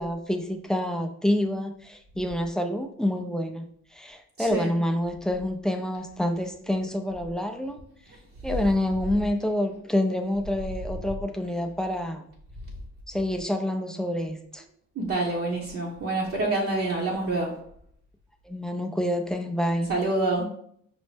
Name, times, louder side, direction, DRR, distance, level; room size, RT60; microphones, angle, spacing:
voice 1, 0.0-7.8 8.4-12.2 13.1-14.6 18.5-20.0, left 1 dB, ahead, 5 dB, 0.3 m, -27 dB
voice 2, 4.4-4.7 15.0-17.5 19.9-20.4, right 2 dB, 50° right, -3 dB, 0.8 m, -27 dB
5.2 x 2.0 x 3.2 m, 0.66 s
cardioid pair, 90°, 30 cm